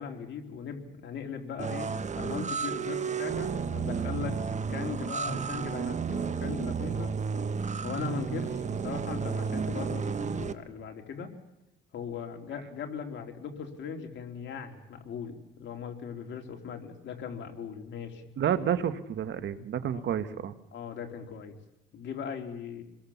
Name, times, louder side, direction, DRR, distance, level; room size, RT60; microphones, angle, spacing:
voice 1, 0.0-4.4 4.7-7.2 7.8-11.4 11.9-18.3 19.9-20.1 20.7-21.6 21.9-22.8, left 6 dB, 65° left, 4 dB, 3.5 m, -39 dB
sound 1, 1.6-10.5, right 6 dB, 35° right, 1.2 m, -32 dB
voice 2, 18.4-20.5, right 9 dB, 65° right, 11 dB, 1.5 m, -30 dB
27.0 x 21.5 x 7.2 m, 0.87 s
cardioid pair, 90°, 20 cm